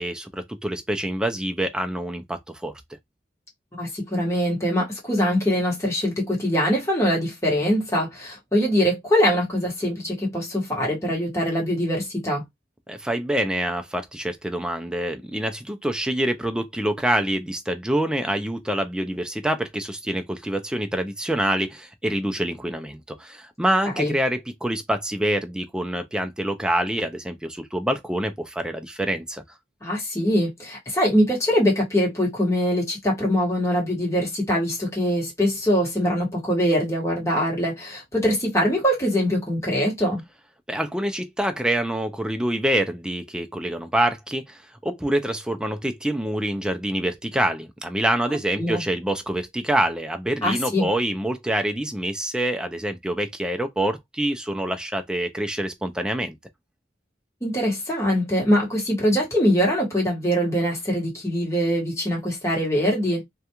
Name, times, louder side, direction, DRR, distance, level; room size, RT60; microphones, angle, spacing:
voice 1, 0.0-2.7 12.9-29.4 40.7-56.4, right 1 dB, 5° right, 0.4 m, -26 dB
voice 2, 3.7-12.4 24.0-24.1 29.8-40.2 48.6-48.8 50.4-50.9 57.4-63.3, equal, 15° left, 1.2 m, -23 dB
2.4 x 2.3 x 2.8 m
head